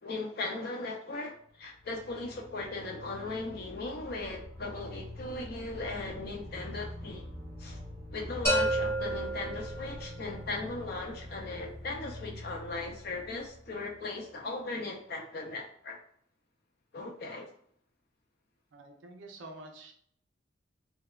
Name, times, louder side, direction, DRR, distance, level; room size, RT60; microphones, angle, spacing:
voice 1, 0.0-7.3 7.6-7.8 8.1-16.0 16.9-17.5, left 3 dB, 55° left, 2 dB, 0.4 m, -38 dB
sound 1, 1.5-14.3, left 1 dB, 35° right, 0.6 m, -44 dB
sound 2, 8.4-10.3, right 1 dB, 15° left, 0.8 m, -30 dB
voice 2, 18.7-19.9, right 2 dB, 85° right, 3 dB, 0.5 m, -48 dB
3.0 x 2.0 x 2.2 m, 0.63 s
head